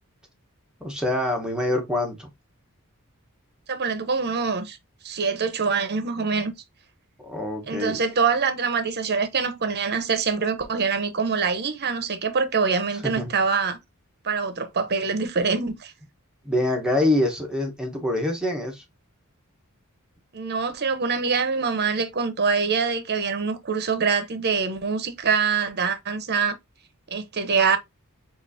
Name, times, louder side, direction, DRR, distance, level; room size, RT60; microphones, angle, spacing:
voice 1, 0.8-2.3 7.2-8.0 12.9-13.3 16.4-18.8, left 1 dB, 5° right, 1.1 m, -25 dB
voice 2, 3.7-4.8 5.0-6.5 7.7-13.8 14.2-15.9 20.3-26.6 27.1-27.8, right 5 dB, 50° right, 0.9 m, -24 dB
7.0 x 2.6 x 2.7 m
head